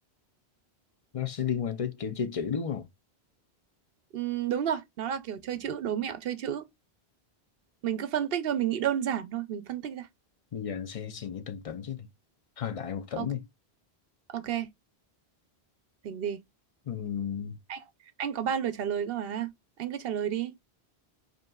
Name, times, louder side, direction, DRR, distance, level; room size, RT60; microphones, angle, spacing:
voice 1, 1.1-2.9 10.5-12.1 12.6-13.4 16.9-17.6, left 7 dB, 45° left, 0.5 m, -33 dB
voice 2, 4.1-6.7 7.8-10.1 13.2-13.3 14.3-14.7 16.0-16.4 17.7-17.8 18.2-19.5 19.8-20.5, right 9 dB, 70° right, 0.8 m, -31 dB
5.1 x 2.9 x 2.2 m
omnidirectional pair, 1.1 m